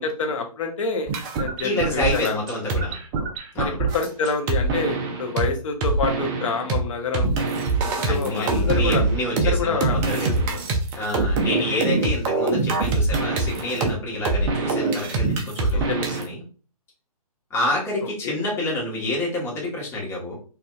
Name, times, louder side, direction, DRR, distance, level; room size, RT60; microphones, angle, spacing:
voice 1, 0.0-2.4 3.6-7.3 7.8-9.0 9.4-10.6 11.7-11.8 15.7-16.1 18.2-18.4, left 4 dB, 55° left, 3 dB, 1.0 m, -27 dB
Glitch Drums, 1.1-5.5 5.8-6.8 7.1-16.3, right 3 dB, 20° right, 0.5 m, -24 dB
voice 2, 1.6-3.0 3.5-3.8 8.0-10.4 10.9-16.4 17.5-20.4, left 2 dB, 15° left, -4 dB, 1.3 m, -28 dB
4.3 x 2.6 x 2.4 m, 0.38 s
figure-of-eight pair, 130°, 20 cm